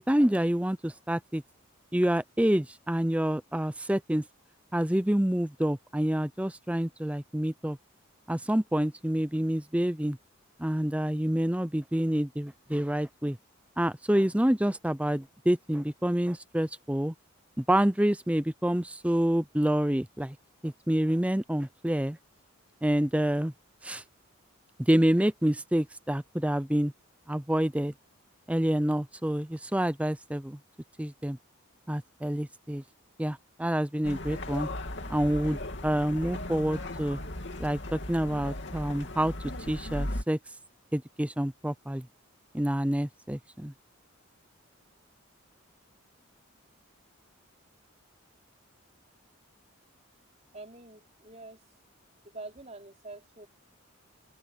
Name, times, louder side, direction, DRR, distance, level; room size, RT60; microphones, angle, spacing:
voice 1, 0.0-1.4 1.9-4.3 4.7-7.8 8.3-10.2 10.6-13.4 13.8-17.1 17.6-20.4 20.6-22.2 22.8-23.5 23.8-24.0 24.8-26.9 27.3-27.9 28.5-30.6 31.0-31.4 31.9-32.8 33.2-34.7 35.1-37.2 37.6-39.3 39.7-40.4 40.9-42.1 42.5-43.7, equal, 5° right, 0.6 m, -27 dB
sound 1, 34.0-40.2, left 1 dB, 55° left, 2.9 m, -37 dB
voice 2, 50.5-51.6 52.3-53.5, right 2 dB, 30° right, 4.6 m, -45 dB
head